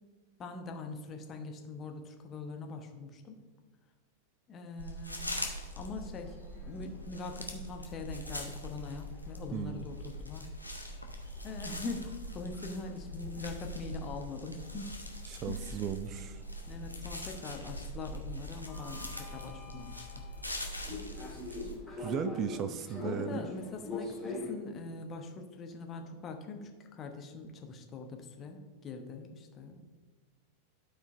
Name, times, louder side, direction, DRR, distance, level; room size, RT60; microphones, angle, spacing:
voice 1, 0.4-3.4 4.5-5.3 5.8-10.4 11.4-15.0 15.5-15.7 16.6-20.1 23.0-29.8, left 3 dB, 25° left, 4 dB, 0.9 m, -42 dB
sound 1, 4.8-21.8, equal, 85° left, 0.8 m, -42 dB
sound 2, 5.1-24.5, left 2 dB, 5° left, 1.9 m, -47 dB
voice 2, 9.5-9.8 15.3-16.4 22.0-23.5, right 9 dB, 35° right, 11 dB, 0.4 m, -36 dB
12.0 x 5.0 x 2.5 m, 1.5 s
figure-of-eight pair, 90°, 0 cm